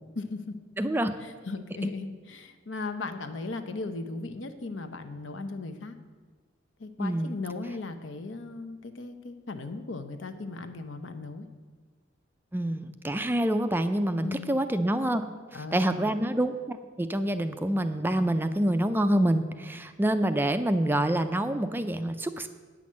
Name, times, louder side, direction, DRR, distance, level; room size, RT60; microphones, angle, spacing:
voice 1, 0.2-0.5 1.2-6.0 6.8-11.5 14.2-14.6 15.5-16.1, left 3 dB, 70° left, 8 dB, 0.8 m, -37 dB
voice 2, 0.8-1.1 7.0-7.3 12.5-15.2 15.7-22.5, right 1 dB, 10° right, 9 dB, 0.4 m, -26 dB
9.1 x 6.1 x 7.3 m, 1.4 s
head